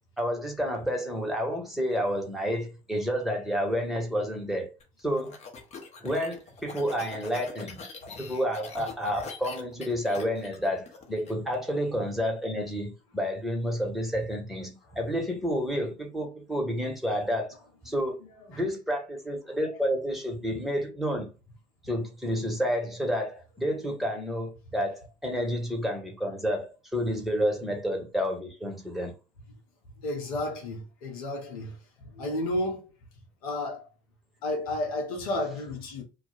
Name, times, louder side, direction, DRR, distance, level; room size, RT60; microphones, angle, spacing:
voice 1, 0.2-4.7 5.0-5.4 6.0-17.6 17.8-18.2 18.5-21.3 21.8-29.1, equal, ahead, 1.1 m, -30 dB
sound 1, 4.8-11.3, left 4 dB, 35° left, 0.9 m, -43 dB
voice 2, 30.0-31.8 32.1-32.8 33.4-33.9 34.4-36.0, left 1 dB, 75° left, 0.7 m, -32 dB
2.3 x 2.2 x 3.9 m
hypercardioid pair, 60°, 18 cm